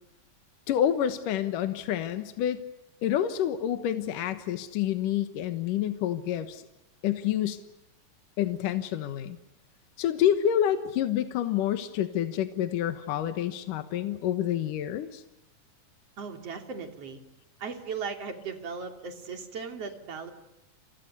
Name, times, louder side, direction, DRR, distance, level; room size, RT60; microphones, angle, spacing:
voice 1, 0.7-2.6 3.0-6.6 7.0-7.6 8.4-9.4 10.0-15.2, left 10 dB, 75° left, 9 dB, 2.8 m, -28 dB
voice 2, 16.2-17.2 17.6-20.3, right 5 dB, 45° right, 5 dB, 3.8 m, -37 dB
30.0 x 28.5 x 6.9 m, 0.88 s
omnidirectional pair, 3.9 m